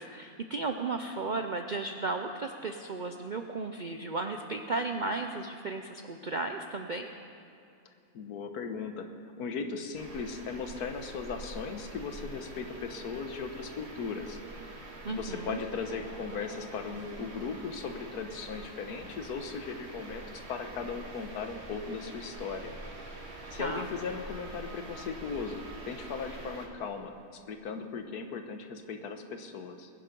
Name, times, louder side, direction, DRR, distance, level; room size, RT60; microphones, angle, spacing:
voice 1, 0.0-7.1 15.0-15.6 23.6-23.9, right 3 dB, 60° right, 5 dB, 0.5 m, -34 dB
voice 2, 8.1-9.1 9.4-14.4 15.1-22.7 23.5-29.9, left 5 dB, 85° left, 6 dB, 1.6 m, -37 dB
sound 1, 9.9-26.7, right 1 dB, 45° right, 1.9 m, -45 dB
20.5 x 10.5 x 5.3 m, 2.6 s
omnidirectional pair, 1.6 m